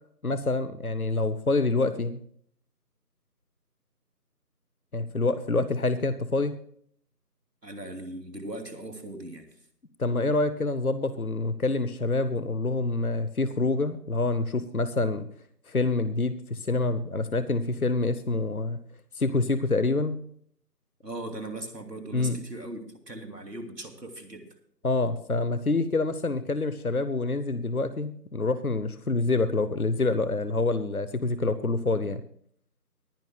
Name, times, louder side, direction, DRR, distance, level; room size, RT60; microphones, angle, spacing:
voice 1, 0.2-2.2 4.9-6.5 10.0-15.3 15.7-18.8 19.2-20.2 22.1-22.4 24.8-32.2, left 3 dB, 60° left, 13 dB, 0.9 m, -26 dB
voice 2, 7.6-9.5 21.0-24.5, right 1 dB, 75° right, 5 dB, 3.0 m, -39 dB
24.0 x 10.5 x 2.3 m, 0.62 s
figure-of-eight pair, 175°, 49 cm